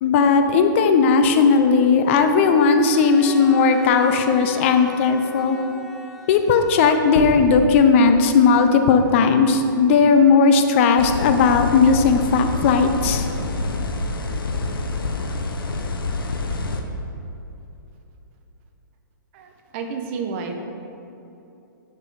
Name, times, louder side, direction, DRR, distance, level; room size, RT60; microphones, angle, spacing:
voice 1, 0.0-5.6 6.3-13.3, left 5 dB, 35° left, 7 dB, 0.7 m, -16 dB
Bowed string instrument, 2.8-7.8, left 2 dB, ahead, 0.7 m, -39 dB
sound 1, 7.2-10.7 11.4-11.5, left 1 dB, 60° left, 1.5 m, -34 dB
sound 2, 11.0-16.8, left 3 dB, 90° left, 1.0 m, -27 dB
voice 2, 19.3-20.6, right 5 dB, 35° right, 4 dB, 1.0 m, -30 dB
11.5 x 5.2 x 4.9 m, 2.9 s
hypercardioid pair, 150°, 11 cm